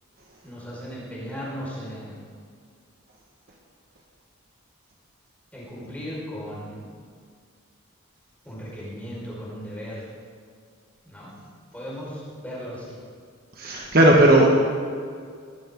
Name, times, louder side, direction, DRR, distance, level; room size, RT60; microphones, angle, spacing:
voice 1, 0.4-2.2 5.5-6.9 8.4-10.1 11.0-11.3 11.7-13.0, equal, 5° left, -7 dB, 5.1 m, -36 dB
voice 2, 13.6-14.5, right 1 dB, 45° right, -2 dB, 1.6 m, -16 dB
19.5 x 14.5 x 3.8 m, 2.1 s
head